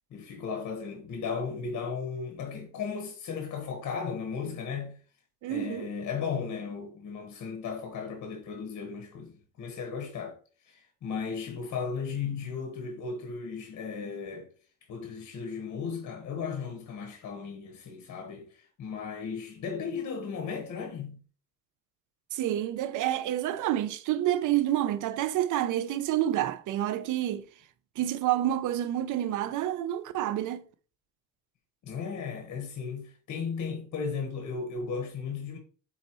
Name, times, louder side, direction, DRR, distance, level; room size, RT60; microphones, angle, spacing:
voice 1, 0.1-5.0 5.5-10.4 10.7-14.5 14.9-21.2 31.8-35.6, left 5 dB, 70° left, 1.4 m, -35 dB
voice 2, 5.4-5.9 22.3-27.5 28.0-30.6, right 12 dB, 85° right, 0.7 m, -28 dB
8.5 x 4.0 x 3.1 m
cardioid pair, 90°, 30 cm